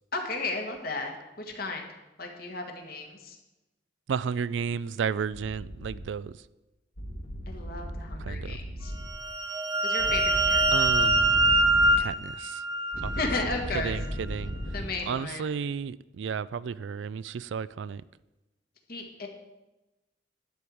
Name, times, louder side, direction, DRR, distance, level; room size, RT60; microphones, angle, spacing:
voice 1, 0.1-1.9 2.2-3.4 7.5-8.9 9.8-10.9 13.2-14.0 14.7-15.5 18.9-19.3, left 3 dB, 55° left, 1.8 m, -34 dB
voice 2, 4.1-6.3 8.3-8.6 10.7-11.6 12.0-12.6 13.0-13.1 13.7-14.6 15.1-18.0, right 6 dB, 75° right, 0.3 m, -33 dB
sound 1, 5.3-6.0 7.0-9.1 10.0-12.0 12.9-14.9, equal, 80° left, 2.2 m, -36 dB
sound 2, 9.0-13.5, right 1 dB, 20° right, 0.7 m, -24 dB
12.0 x 4.7 x 8.5 m
head